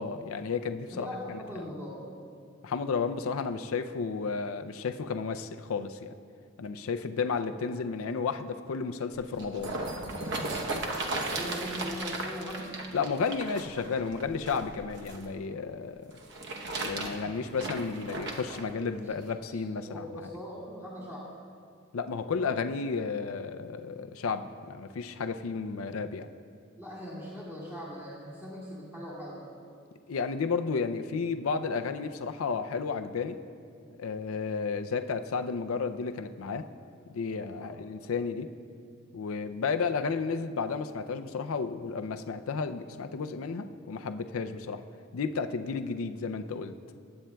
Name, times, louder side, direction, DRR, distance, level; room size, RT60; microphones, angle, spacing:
voice 1, 0.0-1.1 2.6-6.1 6.6-9.8 12.9-16.1 16.8-20.0 21.9-26.3 30.1-33.4 34.0-36.7 37.1-38.5 39.1-44.8 45.1-46.7, left 5 dB, 85° left, 8 dB, 0.5 m, -32 dB
voice 2, 0.9-2.1 11.3-12.7 19.5-19.6 19.9-21.3 26.8-29.5 37.6-37.8, equal, 15° right, -8 dB, 1.9 m, -40 dB
sound 1, 9.1-15.2 16.1-18.6 19.3-19.4, right 2 dB, 60° right, 0.9 m, -36 dB
20.0 x 8.6 x 2.3 m, 2.3 s
head